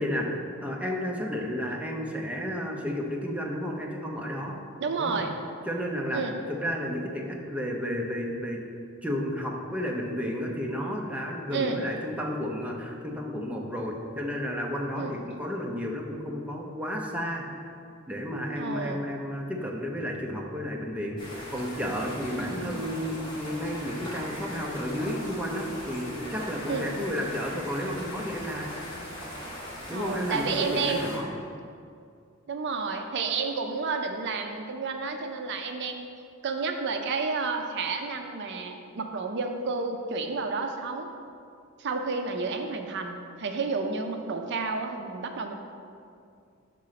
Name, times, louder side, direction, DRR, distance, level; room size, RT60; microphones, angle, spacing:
voice 1, 0.0-4.6 5.0-5.2 5.7-8.7 9.0-17.8 18.1-21.2 21.5-28.7 29.9-31.3, equal, 5° right, 0 dB, 0.6 m, -32 dB
voice 2, 4.8-5.4 6.1-6.3 11.5-11.9 15.0-15.4 18.6-19.1 22.4-22.8 26.7-27.0 29.9-31.0 32.5-36.1 36.4-41.1 41.8-45.6, right 4 dB, 55° right, 5 dB, 0.5 m, -31 dB
sound 1, 21.2-31.2, equal, 25° left, 1.4 m, -40 dB
6.1 x 3.8 x 5.8 m, 2.4 s
head